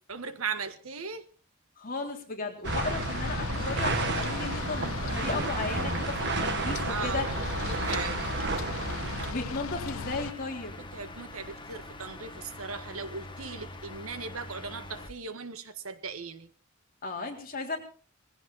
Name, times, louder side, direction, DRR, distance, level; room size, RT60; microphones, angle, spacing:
voice 1, 0.1-1.3 6.9-8.2 10.8-16.5, right 5 dB, 85° right, 1.6 m, -38 dB
voice 2, 1.8-7.3 9.3-10.8 17.0-17.8, left 3 dB, 45° left, 3.6 m, -35 dB
sound 1, 2.6-10.3, left 5 dB, 80° left, 0.8 m, -36 dB
sound 2, 2.6-9.3, right 3 dB, 55° right, 1.8 m, -32 dB
sound 3, 3.5-15.1, left 2 dB, 25° left, 1.6 m, -44 dB
20.0 x 16.0 x 4.2 m
head